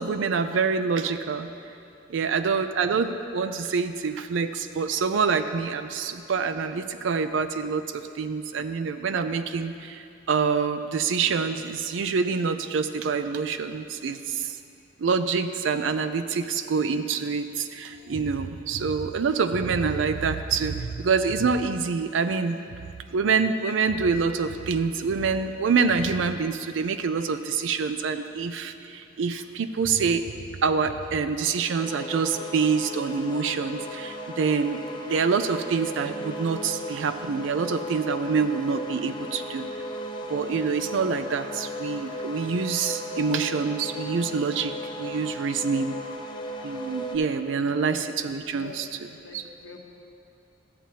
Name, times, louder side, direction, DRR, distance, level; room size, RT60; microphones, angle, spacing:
voice 1, 0.0-1.5 2.1-14.6 15.0-22.8 23.1-30.3 30.6-34.8 35.1-39.7 40.3-46.0 46.6-48.9 49.3-49.4, right 5 dB, 75° right, 10 dB, 0.4 m, -26 dB
voice 2, 2.2-2.5 45.7-45.9 47.7-47.9 48.5-48.9 49.2-49.8, left 4 dB, 65° left, 1 dB, 0.9 m, -45 dB
sound 1, 31.8-47.2, left 1 dB, 25° left, 0.5 m, -36 dB
13.0 x 7.5 x 2.8 m, 2.6 s
head